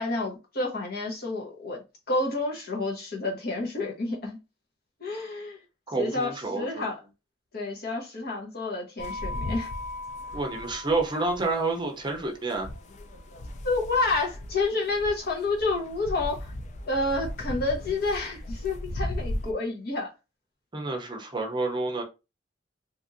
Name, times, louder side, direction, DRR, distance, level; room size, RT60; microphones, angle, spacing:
voice 1, 0.0-4.4 5.0-5.6 5.9-7.0 7.5-9.7 13.6-16.5 16.9-20.1, left 3 dB, 60° left, 0.9 m, -29 dB
voice 2, 5.9-6.9 10.3-12.7 20.7-22.0, right 3 dB, 25° right, 0.6 m, -29 dB
sound 1, 9.0-19.5, left 1 dB, 40° left, 0.4 m, -37 dB
2.9 x 2.6 x 2.5 m
head